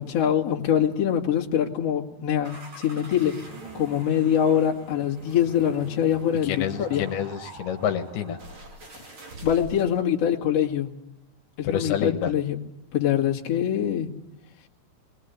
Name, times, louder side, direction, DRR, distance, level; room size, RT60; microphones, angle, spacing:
voice 1, 0.0-3.3 3.7-7.1 9.4-10.9 11.6-12.6 12.9-14.1, left 9 dB, 45° left, -1 dB, 2.9 m, -24 dB
sound 1, 2.4-10.0, right 2 dB, 35° right, 3.2 m, -43 dB
voice 2, 6.4-8.4 11.6-12.3, left 9 dB, 80° left, 6 dB, 3.1 m, -28 dB
22.0 x 20.5 x 8.3 m, 0.86 s
omnidirectional pair, 4.4 m